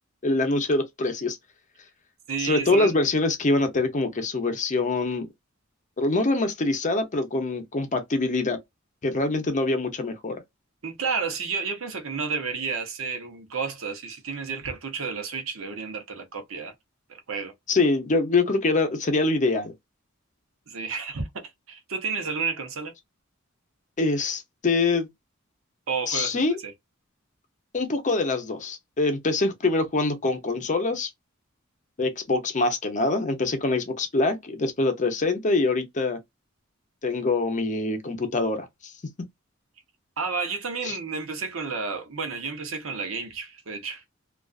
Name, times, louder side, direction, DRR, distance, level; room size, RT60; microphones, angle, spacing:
voice 1, 0.2-1.4 2.4-5.3 6.0-8.6 9.0-10.4 17.7-19.7 24.0-25.1 26.1-26.6 27.7-31.1 32.0-36.2 37.0-38.9 40.8-41.0, left 3 dB, 35° left, 0.6 m, -24 dB
voice 2, 2.3-3.0 10.8-16.7 17.1-17.5 20.7-21.3 21.7-22.9 25.9-26.7 40.2-44.0, right 5 dB, 75° right, 0.8 m, -31 dB
2.4 x 2.3 x 2.3 m
head